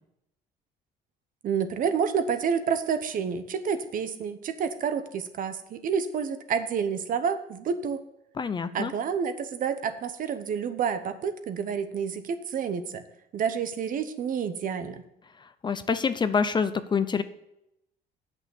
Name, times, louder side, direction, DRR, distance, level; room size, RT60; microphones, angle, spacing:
voice 1, 1.4-8.0 8.7-13.0 13.3-15.0, right 6 dB, 55° right, 11 dB, 0.9 m, -29 dB
voice 2, 8.4-8.9 15.6-17.2, left 5 dB, 25° left, 12 dB, 0.5 m, -26 dB
8.1 x 6.3 x 7.0 m, 0.83 s
cardioid pair, 110°, 17 cm